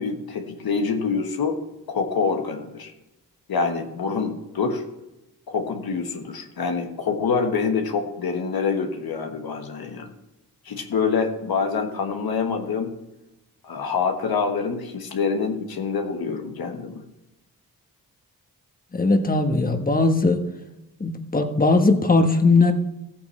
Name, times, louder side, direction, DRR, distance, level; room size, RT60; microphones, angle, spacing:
voice 1, 0.0-1.6 1.9-2.9 3.5-4.8 5.5-10.1 10.6-12.9 13.6-17.0, left 5 dB, 75° left, 4 dB, 1.4 m, -26 dB
voice 2, 18.9-20.4 21.0-22.7, left 3 dB, 25° left, 5 dB, 1.3 m, -19 dB
14.0 x 8.8 x 3.2 m, 0.96 s
cardioid pair, 60°, 37 cm